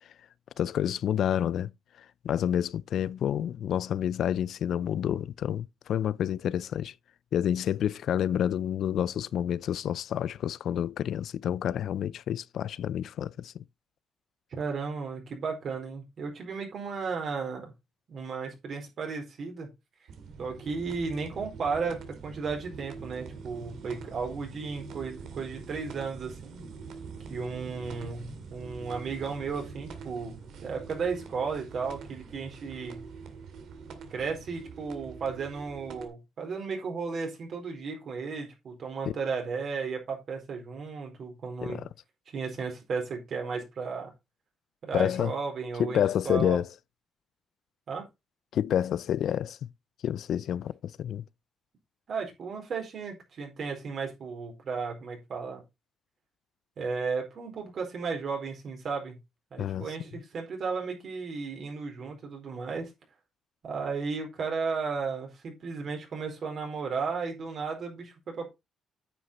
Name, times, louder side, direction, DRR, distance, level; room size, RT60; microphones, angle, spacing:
voice 1, 0.6-1.7 2.2-6.9 7.3-13.6 39.1-39.2 41.6-41.9 44.9-45.3 45.8-46.7 48.5-49.6 50.0-51.2 59.6-59.9, left 10 dB, 70° left, 0.4 m, -29 dB
voice 2, 14.5-17.7 18.1-19.7 20.4-26.6 27.3-33.1 34.1-41.9 42.3-44.1 44.8-46.6 47.9-48.1 52.1-55.6 56.8-59.2 59.5-62.9 63.6-68.5, right 5 dB, 55° right, 4.3 m, -34 dB
sound 1, 20.1-36.1, right 5 dB, 75° right, 2.1 m, -44 dB
9.3 x 6.5 x 4.2 m
cardioid pair, 90°, 0 cm